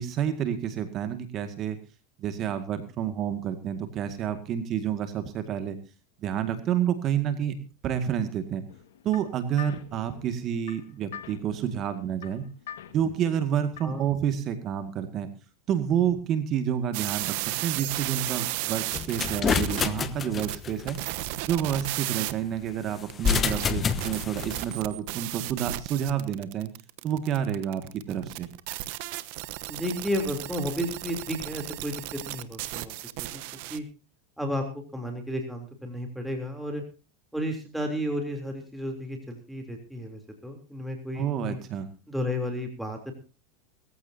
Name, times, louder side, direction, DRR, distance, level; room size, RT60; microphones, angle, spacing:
voice 1, 0.0-1.8 2.2-5.8 6.2-7.6 7.8-8.7 9.0-12.4 12.9-15.3 15.7-21.0 21.5-26.7 27.0-28.5 41.2-41.9, right 9 dB, 40° right, 9 dB, 2.0 m, -29 dB
sound 1, 8.7-14.1, left 9 dB, 85° left, 1.7 m, -46 dB
sound 2, 16.9-19.9 20.4-22.3 23.1-33.8, right 18 dB, 60° right, 1.0 m, -34 dB
golpes puerta + llanto, 18.9-20.9 23.1-24.7, left 7 dB, 25° left, 1.1 m, -28 dB
voice 2, 29.7-33.4 33.7-33.8 34.4-36.8 37.3-41.6 42.1-43.1, equal, ahead, 3 dB, 3.4 m, -33 dB
20.5 x 15.0 x 2.8 m, 0.31 s
supercardioid pair, 115°, 0 cm